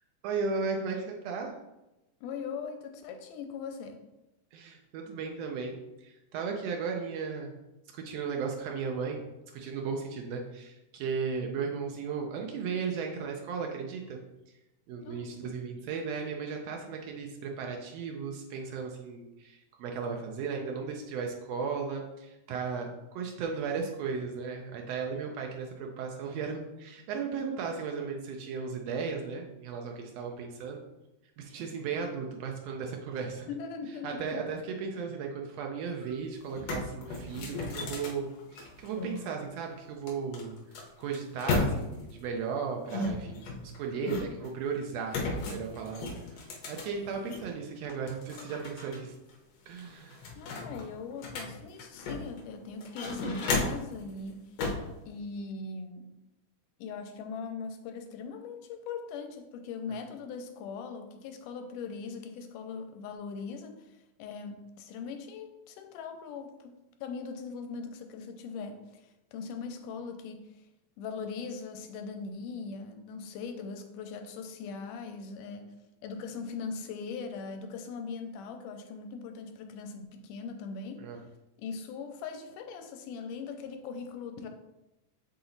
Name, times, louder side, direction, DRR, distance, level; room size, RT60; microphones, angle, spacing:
voice 1, 0.2-1.6 4.5-7.5 7.9-9.2 9.5-14.2 14.9-30.8 31.4-33.5 34.0-40.5 41.0-43.5 43.7-49.1 49.7-50.2 81.0-81.2, right 5 dB, 90° right, 2 dB, 1.4 m, -35 dB
voice 2, 2.2-4.0 15.0-15.5 33.5-34.4 50.4-54.5 55.1-56.1 56.8-66.7 67.0-70.6 71.0-75.7 76.0-81.0 81.6-84.5, left 5 dB, 85° left, 6 dB, 2.1 m, -40 dB
sound 1, 36.0-36.1 36.4-39.2 40.1-42.1 42.9-44.5 45.1-47.5 47.9-49.0 49.3-49.4 49.8-52.4 52.8-53.9 54.6-54.9, left 3 dB, 65° left, 1.8 m, -34 dB
8.2 x 2.9 x 3.9 m, 0.97 s
omnidirectional pair, 3.7 m